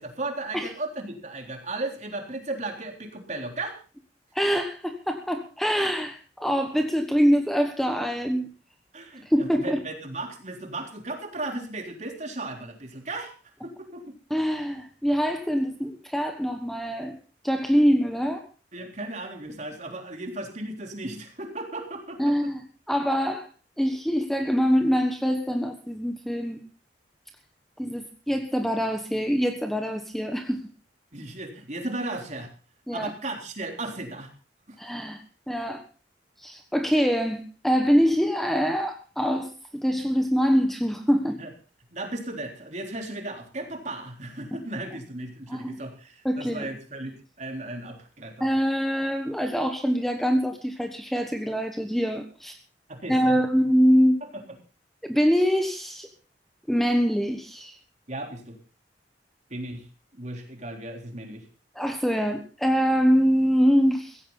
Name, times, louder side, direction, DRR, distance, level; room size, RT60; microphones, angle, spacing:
voice 1, 0.0-3.8 8.9-13.3 13.6-14.0 18.7-22.3 31.1-32.5 32.9-34.3 34.7-34.8 41.4-41.5 41.9-48.5 52.9-53.4 58.1-58.6 59.5-59.9 60.1-61.4, right 2 dB, 40° right, 3 dB, 3.7 m, -35 dB
voice 2, 4.3-8.5 9.3-9.8 14.3-17.2 17.4-18.4 22.2-23.5 23.8-26.6 27.8-30.6 32.9-33.1 34.8-35.2 35.5-35.8 36.4-41.4 44.5-44.6 45.5-45.8 46.2-46.7 48.4-52.6 53.1-54.2 55.0-56.1 56.7-57.8 61.7-64.2, equal, ahead, 5 dB, 1.3 m, -24 dB
16.0 x 16.0 x 4.0 m, 0.36 s
head